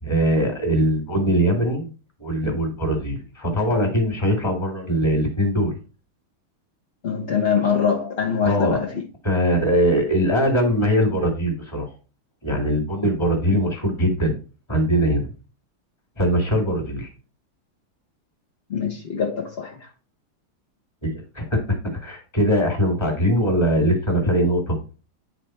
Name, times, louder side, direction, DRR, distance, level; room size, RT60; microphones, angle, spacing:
voice 1, 0.0-1.9 2.2-5.7 8.4-8.8 9.2-11.9 12.4-14.4 14.7-15.3 16.2-17.1 21.0-24.8, equal, 15° left, 1.9 m, -21 dB
voice 2, 7.0-9.0 18.7-19.9, left 6 dB, 50° left, 0.7 m, -23 dB
9.4 x 3.8 x 4.3 m
omnidirectional pair, 2.3 m